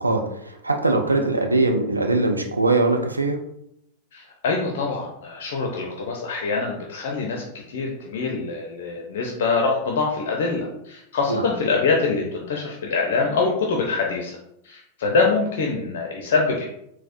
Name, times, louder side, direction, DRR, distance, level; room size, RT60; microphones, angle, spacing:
voice 1, 0.0-3.4 11.3-11.4, right 2 dB, 80° right, 3 dB, 0.4 m, -21 dB
voice 2, 4.1-14.3 14.6-16.6, left 4 dB, 55° left, 0 dB, 0.5 m, -24 dB
4.1 x 2.0 x 2.5 m, 0.76 s
figure-of-eight pair, 90°, 0 cm